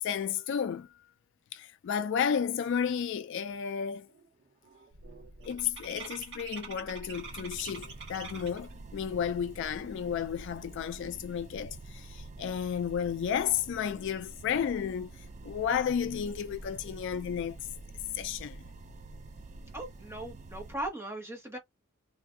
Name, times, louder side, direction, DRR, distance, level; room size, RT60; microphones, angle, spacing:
voice 1, 0.0-1.1 1.5-4.1 5.5-17.6 18.1-18.7, left 8 dB, 55° left, 0.3 m, -32 dB
sound 1, 3.0-3.1 3.5-3.8 4.1-8.7, right 5 dB, 55° right, 1.6 m, -45 dB
sound 2, 4.9-20.9, equal, 70° right, 0.7 m, -52 dB
sound 3, 7.0-20.7, right 3 dB, 30° right, 0.3 m, -49 dB
voice 2, 19.7-21.6, right 1 dB, 10° right, 1.0 m, -38 dB
3.3 x 2.5 x 2.6 m
head